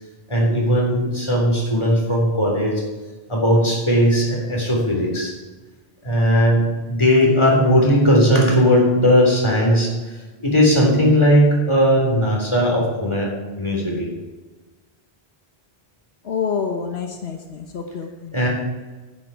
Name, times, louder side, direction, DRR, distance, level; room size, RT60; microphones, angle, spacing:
voice 1, 0.3-2.8 3.3-5.3 6.0-13.3 13.6-14.1 18.3-18.5, equal, 30° left, -2 dB, 3.6 m, -17 dB
voice 2, 16.2-18.3, left 6 dB, 80° left, 4 dB, 1.3 m, -27 dB
11.0 x 10.0 x 4.6 m, 1.3 s
omnidirectional pair, 1.0 m